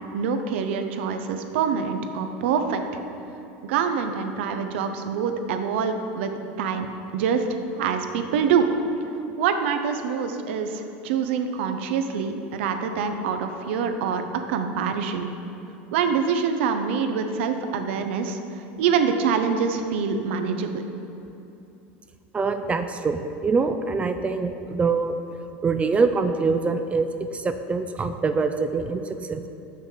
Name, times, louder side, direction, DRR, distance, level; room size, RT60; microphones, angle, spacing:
voice 1, 0.1-2.8 3.6-6.9 7.1-8.7 9.4-14.2 14.5-15.3 15.9-18.4 18.8-20.8, right 6 dB, 80° right, 7 dB, 0.7 m, -25 dB
voice 2, 22.3-25.2 25.6-29.0 29.3-29.4, right 4 dB, 20° right, 8 dB, 0.4 m, -24 dB
6.4 x 6.0 x 5.6 m, 2.9 s
supercardioid pair, 120°, 6 cm